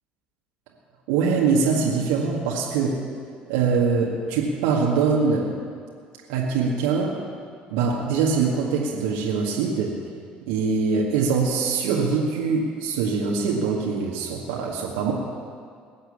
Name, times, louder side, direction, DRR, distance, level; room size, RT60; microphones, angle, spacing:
voice 1, 1.1-3.0 3.5-5.5 6.3-7.2 7.7-9.9 10.5-15.1, right 5 dB, 70° right, -3 dB, 1.9 m, -23 dB
20.0 x 8.1 x 8.4 m, 2.1 s
figure-of-eight pair, 55°, 5 cm